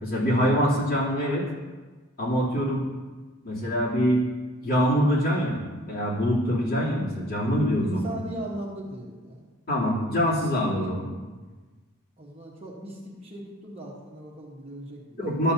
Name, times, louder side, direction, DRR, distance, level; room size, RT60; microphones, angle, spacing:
voice 1, 0.0-1.4 2.2-2.8 3.4-4.2 4.6-8.1 9.7-11.1 15.2-15.5, equal, 45° left, -8 dB, 3.1 m, -24 dB
voice 2, 7.8-9.4 12.2-15.2, right 1 dB, 25° right, -3 dB, 1.2 m, -38 dB
12.5 x 7.5 x 2.8 m, 1.3 s
head